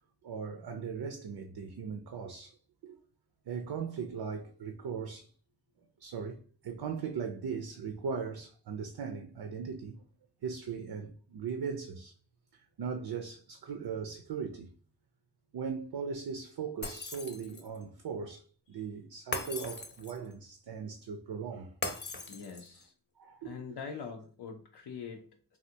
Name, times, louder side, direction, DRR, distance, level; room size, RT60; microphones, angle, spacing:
voice 1, 0.2-2.6 2.8-3.0 3.5-5.3 6.0-10.0 10.4-12.1 12.5-14.7 15.5-21.7 23.2-23.5, right 6 dB, 80° right, 0.5 m, -39 dB
Shatter, 16.8-17.8 19.3-20.3 21.8-22.8, left 3 dB, 30° left, 0.6 m, -39 dB
voice 2, 22.3-22.9 23.4-25.6, left 6 dB, 85° left, 0.6 m, -44 dB
3.4 x 2.3 x 2.7 m
cardioid pair, 45°, 39 cm